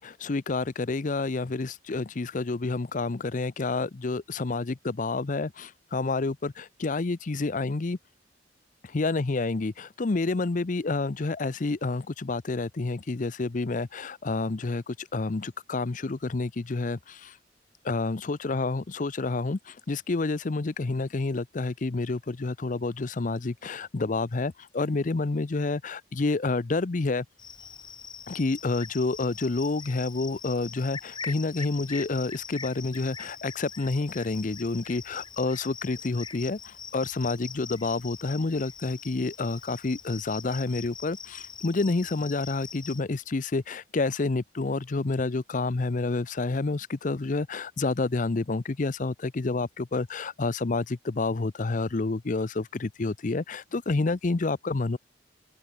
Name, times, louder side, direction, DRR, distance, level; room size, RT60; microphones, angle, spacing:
voice 1, 0.0-8.0 8.8-17.4 17.8-27.2 28.3-55.0, left 3 dB, 45° left, 0.6 m, -29 dB
Cricket, 27.4-43.0, left 6 dB, 25° left, 3.7 m, -43 dB
head